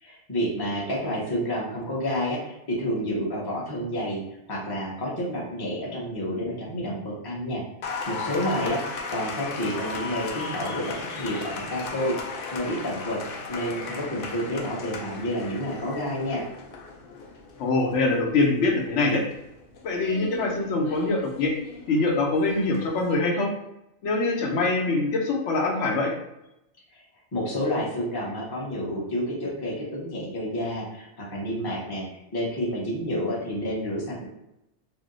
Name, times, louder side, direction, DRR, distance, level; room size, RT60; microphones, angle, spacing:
voice 1, 0.0-4.2 4.5-7.6 8.1-13.2 13.5-16.4 26.9-27.0 27.3-32.0 32.3-34.2, equal, 25° left, -4 dB, 0.7 m, -29 dB
Applause, 7.8-23.1, left 4 dB, 60° left, 0.6 m, -36 dB
voice 2, 17.6-19.2 19.8-21.5 21.9-23.5 24.0-26.1, left 3 dB, 80° left, 0 dB, 0.9 m, -24 dB
2.7 x 2.1 x 3.7 m, 0.87 s
omnidirectional pair, 1.2 m